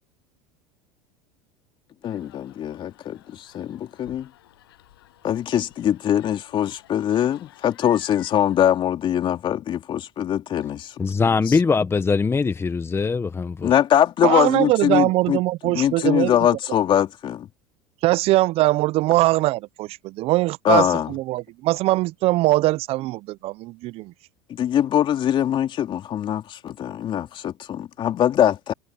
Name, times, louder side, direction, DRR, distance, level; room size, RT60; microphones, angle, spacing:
sound 1, 2.0-8.6, left 15 dB, 85° left, 8.0 m, -52 dB
voice 1, 2.0-4.3 5.2-10.9 11.5-11.6 13.6-17.5 20.6-21.1 24.5-28.7, left 10 dB, 45° left, 3.1 m, -22 dB
voice 2, 11.0-13.7, left 4 dB, 20° left, 1.4 m, -22 dB
voice 3, 14.2-16.3 18.0-24.1, right 18 dB, 55° right, 0.6 m, -21 dB
hypercardioid pair, 90°, 12 cm